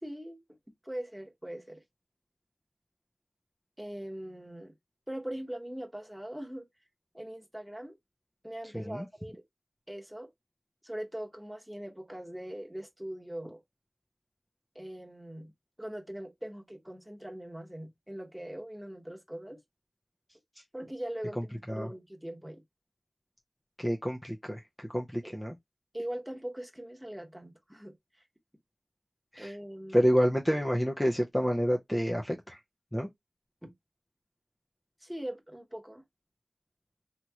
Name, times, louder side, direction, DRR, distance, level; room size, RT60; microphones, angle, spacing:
voice 1, 0.0-0.4 0.8-1.8 3.8-4.7 5.1-6.6 7.1-8.0 8.4-9.4 9.9-10.3 10.8-13.6 14.7-15.5 15.8-19.6 20.7-22.6 25.2-25.4 25.9-27.9 29.4-30.2 33.6-33.7 35.0-36.0, right 1 dB, 10° right, 1.0 m, -41 dB
voice 2, 8.6-9.0 21.4-21.9 23.8-25.6 29.3-29.5 29.9-32.6 32.9-33.1, equal, 10° left, 0.6 m, -29 dB
2.9 x 2.8 x 2.3 m
wide cardioid pair, 45°, 0 cm